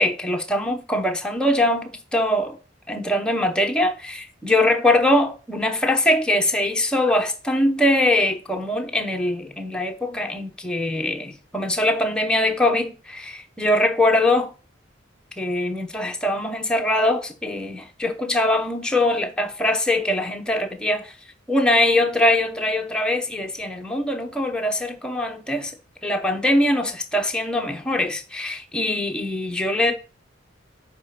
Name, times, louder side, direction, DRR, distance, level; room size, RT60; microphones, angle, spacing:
voice 1, 0.0-2.6 2.9-14.5 15.4-21.1 21.5-25.7 26.0-29.9, left 1 dB, 5° left, 0.9 m, -22 dB
4.8 x 4.7 x 5.8 m
head